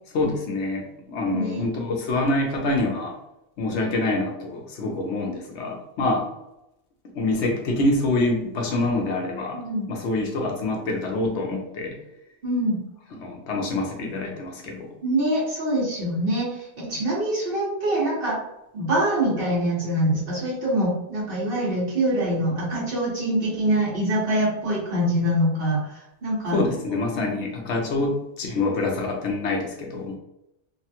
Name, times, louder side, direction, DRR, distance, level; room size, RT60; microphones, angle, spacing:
voice 1, 0.1-3.2 3.6-6.3 7.1-9.6 9.9-12.0 13.1-14.9 26.5-30.2, left 2 dB, 80° left, 1 dB, 1.0 m, -26 dB
voice 2, 1.3-1.7 9.5-9.9 12.4-12.8 15.0-18.4 18.7-25.9 26.2-26.7, right 1 dB, 55° right, -6 dB, 1.3 m, -24 dB
3.1 x 2.2 x 2.8 m, 0.88 s
omnidirectional pair, 1.1 m